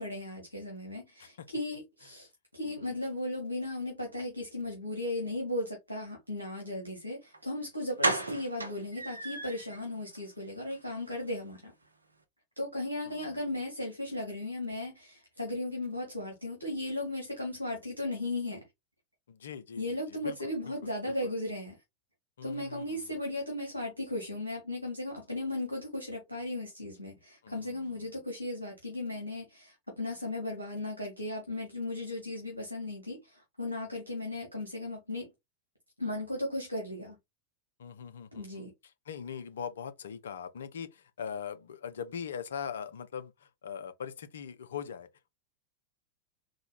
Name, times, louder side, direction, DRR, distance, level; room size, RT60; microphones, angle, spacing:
voice 1, 0.0-11.7 12.6-18.6 19.8-21.8 22.4-35.3 36.0-37.2 38.3-38.7, left 1 dB, 90° left, 1.0 m, -36 dB
voice 2, 2.6-3.0 13.1-13.4 19.3-20.4 20.6-20.7 21.1-21.3 22.4-23.0 27.4-28.1 37.8-38.7 39.1-45.3, left 7 dB, 65° left, 0.5 m, -41 dB
sound 1, 7.3-7.4 8.0-9.8 10.1-10.2 10.6-10.8 11.0-11.1, right 2 dB, 80° right, 0.6 m, -33 dB
3.8 x 2.2 x 3.1 m
figure-of-eight pair, 90°, 0 cm